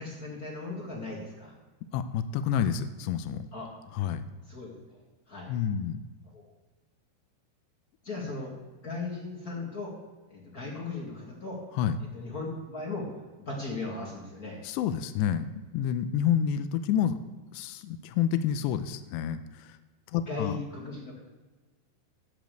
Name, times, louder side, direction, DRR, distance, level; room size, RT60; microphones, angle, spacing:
voice 1, 0.0-1.5 3.5-3.7 4.5-5.0 5.3-5.5 6.3-6.4 8.0-8.5 8.8-10.0 10.3-11.6 12.0-13.1 13.4-14.6 20.3-21.2, left 3 dB, 55° left, -3 dB, 0.9 m, -37 dB
voice 2, 1.9-3.5 3.9-4.2 5.5-6.0 11.7-12.0 14.6-17.2 17.5-19.8 20.1-20.6, left 9 dB, 85° left, 10 dB, 2.8 m, -29 dB
13.5 x 5.1 x 7.6 m, 1.3 s
omnidirectional pair, 5.0 m